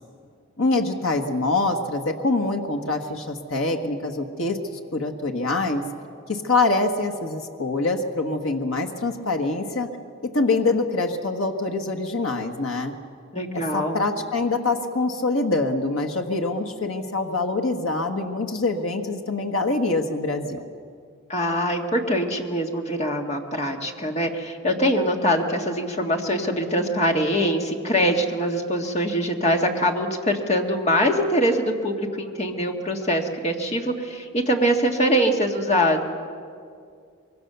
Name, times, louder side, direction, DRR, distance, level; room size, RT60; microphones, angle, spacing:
voice 1, 0.6-5.8 6.3-9.9 10.3-12.9 13.5-20.7, left 3 dB, 70° left, 3 dB, 1.5 m, -25 dB
voice 2, 13.3-14.0 21.3-36.0, equal, 30° left, 2 dB, 1.8 m, -23 dB
25.0 x 23.0 x 6.9 m, 2.3 s
head